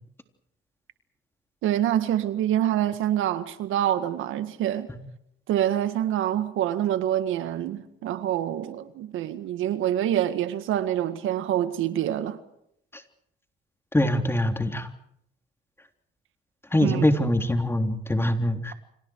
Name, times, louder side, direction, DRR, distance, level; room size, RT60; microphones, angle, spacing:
voice 1, 1.6-4.9 5.5-12.4 16.8-17.0, right 11 dB, 90° right, 1.9 m, -26 dB
voice 2, 13.9-14.9 16.7-18.7, left 1 dB, 10° left, 3.5 m, -23 dB
30.0 x 26.0 x 4.8 m
cardioid pair, 90°, 20 cm